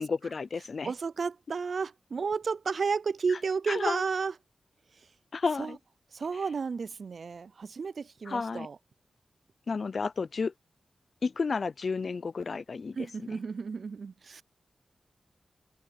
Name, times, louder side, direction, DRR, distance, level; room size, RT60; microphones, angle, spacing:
voice 1, 0.0-0.9 3.7-4.0 5.3-5.8 8.3-8.7 9.7-10.5 11.2-13.0, left 4 dB, 50° left, 0.4 m, -31 dB
voice 2, 0.8-4.3 5.6-5.8 6.1-8.8 13.0-14.4, right 5 dB, 55° right, 0.3 m, -32 dB
wide cardioid pair, 160°, 0 cm